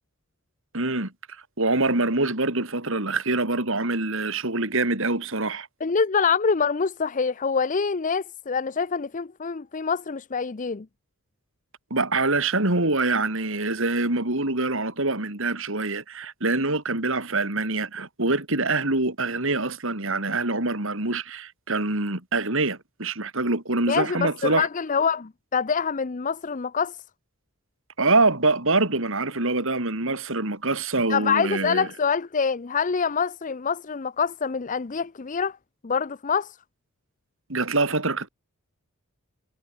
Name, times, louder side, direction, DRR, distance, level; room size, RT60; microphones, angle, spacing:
voice 1, 0.7-1.1 1.6-5.7 11.9-24.7 28.0-31.9 37.5-38.3, right 2 dB, 60° right, 3.9 m, -25 dB
voice 2, 5.8-10.9 23.9-27.0 31.1-35.6 35.8-36.5, left 5 dB, 35° left, 0.6 m, -25 dB
head